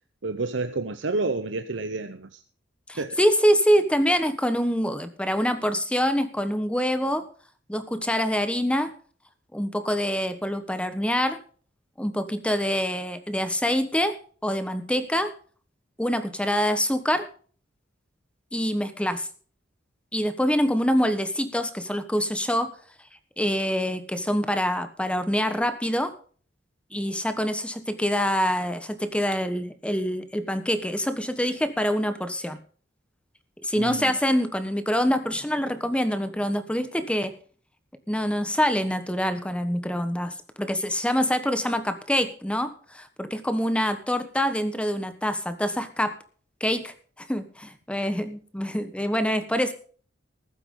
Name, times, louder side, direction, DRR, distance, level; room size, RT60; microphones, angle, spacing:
voice 1, 0.2-2.4 3.0-3.2 33.8-34.1, right 3 dB, 75° right, 0.8 m, -29 dB
voice 2, 2.9-7.2 7.7-8.9 9.5-11.4 12.0-14.2 14.4-15.3 16.0-17.3 18.5-19.3 20.1-22.7 23.4-26.1 26.9-32.6 33.6-37.3 38.1-46.1 46.6-46.9 47.3-49.7, equal, 5° left, 1.2 m, -25 dB
15.0 x 12.0 x 3.8 m
head